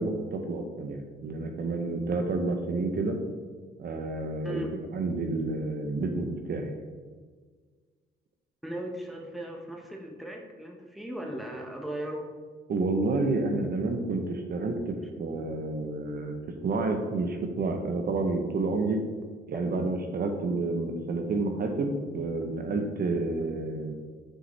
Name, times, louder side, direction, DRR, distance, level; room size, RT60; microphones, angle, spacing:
voice 1, 0.0-3.2 3.8-6.8 12.7-16.3 16.6-19.0 19.5-23.9, right 3 dB, 50° right, 5 dB, 0.7 m, -29 dB
voice 2, 8.6-12.3 19.5-19.6, right 1 dB, ahead, 1 dB, 1.0 m, -37 dB
6.2 x 5.0 x 3.2 m, 1.5 s
cardioid pair, 90°, 20 cm